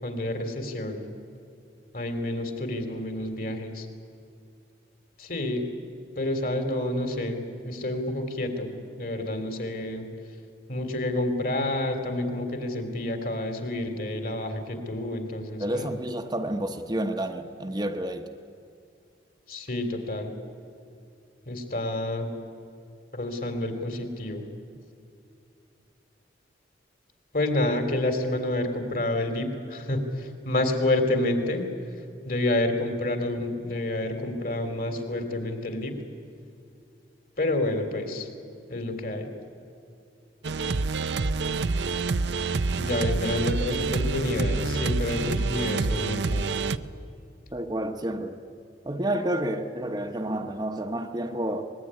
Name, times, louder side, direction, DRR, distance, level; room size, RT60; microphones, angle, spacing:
voice 1, 0.0-1.0 1.9-3.9 5.2-5.7 6.1-10.1 10.7-16.0 19.5-20.3 21.4-22.3 23.1-24.4 27.3-31.6 32.2-36.0 37.4-38.3 38.7-39.3 42.8-46.5, left 1 dB, 50° left, 3.3 m, -29 dB
voice 2, 15.6-18.3 47.5-48.4 48.8-51.6, right 1 dB, 25° right, 1.0 m, -30 dB
sound 1, 40.4-46.8, right 3 dB, 75° right, 0.7 m, -27 dB
24.0 x 21.0 x 9.9 m
head